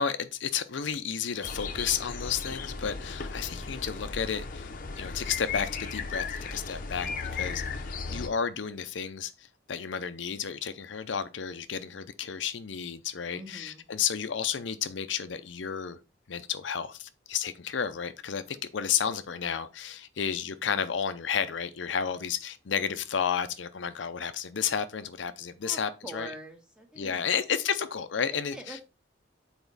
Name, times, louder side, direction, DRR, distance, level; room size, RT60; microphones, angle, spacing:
voice 1, 0.0-4.7 5.0-7.8 8.1-16.0 16.3-26.3 27.0-28.8, left 7 dB, 85° left, 0.6 m, -32 dB
sound 1, 1.4-8.3, left 4 dB, 50° left, 0.8 m, -36 dB
voice 2, 8.0-8.3 13.3-13.8 25.6-27.1 28.5-28.8, right 1 dB, 5° right, 1.5 m, -44 dB
7.1 x 4.3 x 3.9 m
head